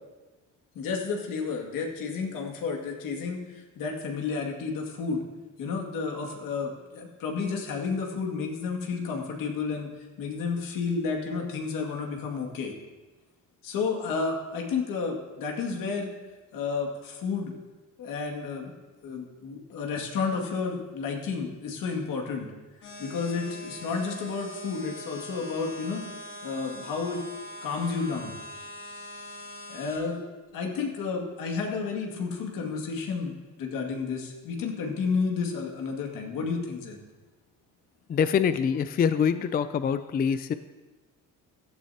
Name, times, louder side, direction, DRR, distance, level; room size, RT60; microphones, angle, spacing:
voice 1, 0.7-5.2 5.6-9.9 10.2-12.7 13.6-16.1 16.5-17.5 18.0-18.7 19.0-22.5 23.0-26.0 26.4-27.2 27.6-28.4 29.7-30.2 30.5-33.3 33.6-37.0, left 5 dB, 80° left, 1 dB, 2.3 m, -31 dB
sound 1, 22.8-30.0, equal, 65° left, 2.8 m, -42 dB
voice 2, 38.1-40.5, left 7 dB, 30° left, 12 dB, 0.4 m, -25 dB
15.5 x 12.5 x 2.9 m, 1.2 s
cardioid pair, 140°, 33 cm